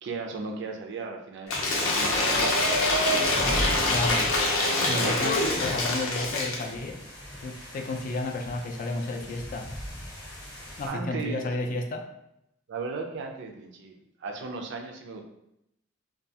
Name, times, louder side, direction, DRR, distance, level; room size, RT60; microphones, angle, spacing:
voice 1, 0.0-3.1 4.6-5.4 10.8-11.5 12.7-13.9 14.2-15.2, right 4 dB, 65° right, 3 dB, 0.4 m, -36 dB
Cheering / Applause / Crowd, 1.5-6.7, left 2 dB, 85° left, 0.6 m, -25 dB
sound 1, 1.5-10.9, equal, 20° left, 0.7 m, -39 dB
voice 2, 3.9-4.2 4.8-7.0 7.4-9.7 10.8-12.1, left 2 dB, 45° left, 3 dB, 0.3 m, -32 dB
2.3 x 2.3 x 2.7 m, 0.81 s
head